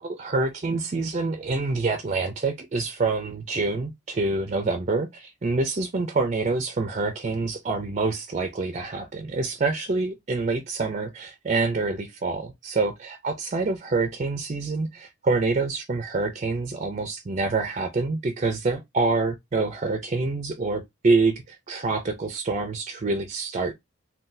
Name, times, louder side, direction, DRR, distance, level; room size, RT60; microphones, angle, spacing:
voice 1, 0.0-23.7, right 3 dB, 35° right, 0.4 m, -26 dB
3.8 x 2.3 x 2.6 m
head